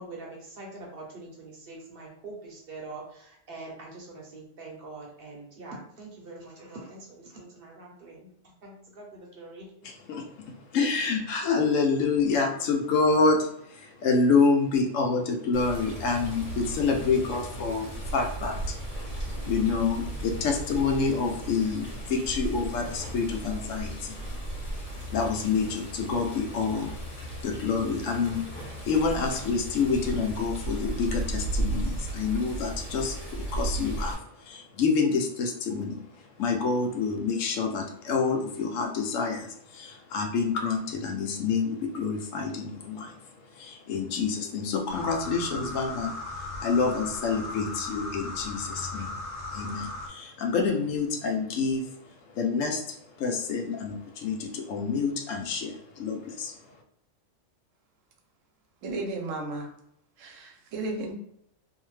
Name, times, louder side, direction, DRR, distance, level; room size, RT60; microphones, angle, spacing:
voice 1, 0.0-9.9, right 2 dB, 55° right, -1 dB, 0.8 m, -44 dB
voice 2, 10.1-18.8 19.1-24.2 25.1-28.4 28.9-36.0 36.4-43.2 43.5-49.2 49.5-51.9 52.3-56.6, left 4 dB, 85° left, 3 dB, 1.0 m, -28 dB
Water, 15.5-34.1, right 1 dB, 40° left, 1.2 m, -35 dB
sound 1, 44.9-50.1, left 2 dB, 70° left, 1.2 m, -37 dB
voice 3, 58.8-59.7 60.2-61.1, right 2 dB, 85° right, 2 dB, 1.0 m, -34 dB
2.7 x 2.1 x 3.1 m, 0.72 s
omnidirectional pair, 1.3 m